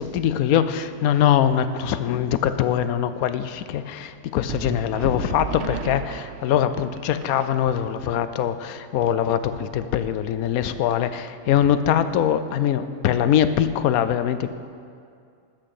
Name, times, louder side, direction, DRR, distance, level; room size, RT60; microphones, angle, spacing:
voice 1, 0.0-14.5, left 9 dB, 70° left, 12 dB, 1.0 m, -22 dB
sound 1, 4.5-8.0, right 8 dB, 80° right, 0.5 m, -35 dB
13.0 x 6.4 x 7.7 m, 2.3 s
omnidirectional pair, 1.7 m